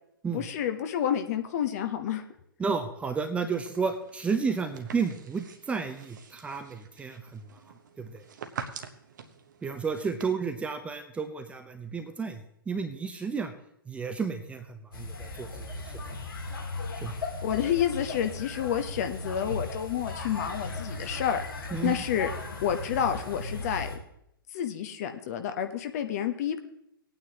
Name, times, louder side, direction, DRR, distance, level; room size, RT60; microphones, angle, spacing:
voice 1, 0.3-2.2 17.4-21.4 21.8-22.3 22.6-23.9 24.5-26.6, left 9 dB, 45° left, 7 dB, 1.0 m, -29 dB
voice 2, 2.6-7.6 8.0-8.2 9.6-13.5 13.9-15.7 17.0-17.2 21.7-22.0, right 5 dB, 10° right, 5 dB, 0.7 m, -32 dB
sound 1, 3.6-10.2, right 6 dB, 55° right, 1.0 m, -45 dB
sound 2, 14.9-24.0, left 3 dB, 70° left, 3.1 m, -37 dB
19.5 x 9.2 x 2.9 m, 0.74 s
figure-of-eight pair, 110°, 12 cm